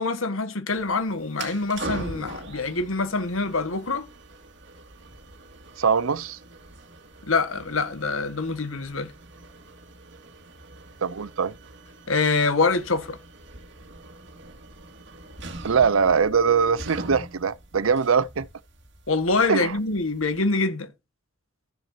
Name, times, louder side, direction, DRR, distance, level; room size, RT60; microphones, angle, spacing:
voice 1, 0.0-4.1 7.2-9.1 12.1-13.2 19.1-20.9, left 3 dB, 85° left, 1.8 m, -25 dB
sound 1, 0.7-20.5, right 2 dB, 60° right, 2.5 m, -42 dB
voice 2, 5.8-6.4 11.0-11.5 15.6-18.5 19.5-19.8, right 6 dB, 85° right, 0.6 m, -22 dB
14.5 x 7.3 x 2.9 m
head